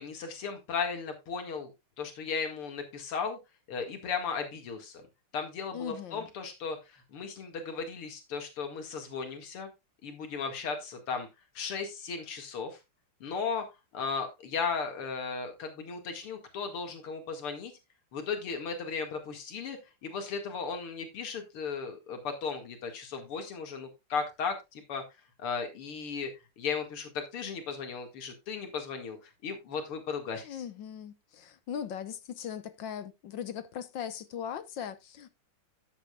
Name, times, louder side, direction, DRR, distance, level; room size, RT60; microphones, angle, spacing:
voice 1, 0.0-1.7 2.0-3.4 3.7-5.0 5.3-9.7 10.0-11.3 11.5-12.8 13.2-13.6 13.9-17.7 18.1-25.0 25.4-26.3 26.6-30.6, left 5 dB, 90° left, 2.9 m, -36 dB
voice 2, 5.7-6.3 30.4-35.3, left 8 dB, 65° left, 1.6 m, -39 dB
13.0 x 8.9 x 2.3 m
omnidirectional pair, 2.3 m